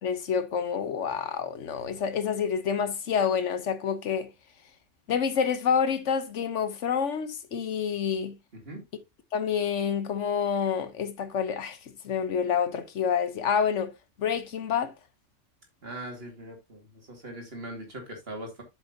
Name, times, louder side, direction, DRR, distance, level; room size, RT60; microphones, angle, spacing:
voice 1, 0.0-4.3 5.1-8.3 9.3-11.8 12.0-13.9 14.2-14.9, left 7 dB, 75° left, 1.3 m, -28 dB
voice 2, 15.8-16.8 17.1-18.6, right 1 dB, 55° right, 2.7 m, -40 dB
7.7 x 7.2 x 2.8 m
omnidirectional pair, 1.3 m